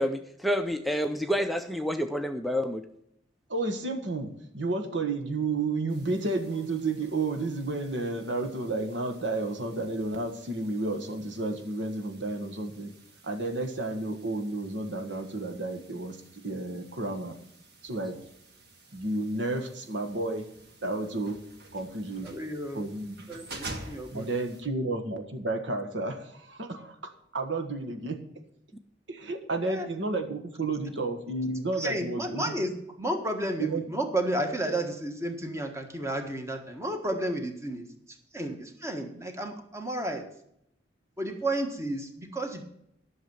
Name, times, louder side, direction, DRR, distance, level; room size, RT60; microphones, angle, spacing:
voice 1, 0.0-2.8, equal, ahead, 7 dB, 0.5 m, -28 dB
voice 2, 3.5-12.9 13.2-16.2 16.4-17.3 17.8-18.2 18.9-20.5 20.8-21.4 21.7-22.3 22.7-23.2 24.1-28.2 29.1-32.6 33.6-33.8, right 2 dB, 80° right, 6 dB, 1.6 m, -31 dB
sound 1, 5.9-24.6, right 2 dB, 60° right, 2.1 m, -50 dB
voice 3, 22.2-22.8 23.3-24.3 29.6-29.9 31.8-32.7 33.0-37.9 38.3-40.3 41.2-42.6, right 1 dB, 15° right, 5 dB, 1.4 m, -32 dB
11.0 x 6.5 x 7.0 m, 0.74 s
head